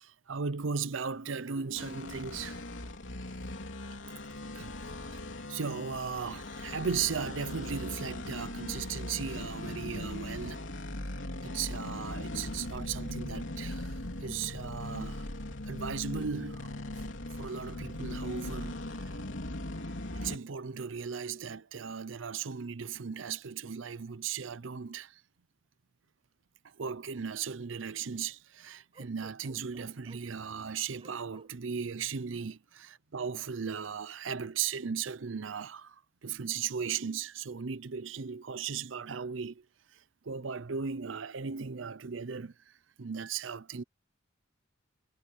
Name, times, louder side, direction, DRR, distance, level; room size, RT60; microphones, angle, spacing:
voice 1, 0.0-2.6 4.5-10.8 11.4-15.3 15.7-16.7 17.4-19.2 20.1-25.2 26.6-39.6 39.9-42.7 43.0-43.8, right 6 dB, 90° right, 0.7 m, -37 dB
sound 1, 1.8-20.4, left 1 dB, 80° left, 3.3 m, -39 dB
Bark, 28.9-30.4 31.0-31.5, right 2 dB, 30° right, 7.2 m, -55 dB
head